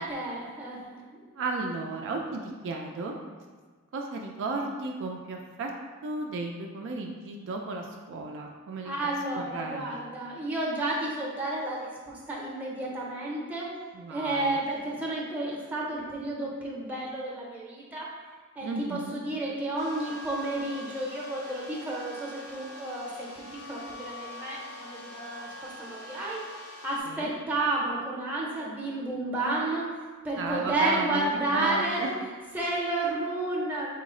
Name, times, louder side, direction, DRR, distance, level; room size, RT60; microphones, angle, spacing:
voice 1, 0.0-1.3 8.8-13.7 14.1-18.1 18.6-23.1 23.4-26.4 26.8-29.9 30.2-32.1 32.5-33.9, right 2 dB, 5° right, -4 dB, 0.6 m, -31 dB
voice 2, 1.4-3.2 3.9-5.7 6.0-10.0 13.9-14.6 18.6-19.2 27.1-27.3 30.4-32.1, right 3 dB, 55° right, 1 dB, 0.3 m, -34 dB
sound 1, 19.8-27.0, left 1 dB, 70° left, 0.8 m, -44 dB
4.3 x 2.0 x 3.6 m, 1.5 s
head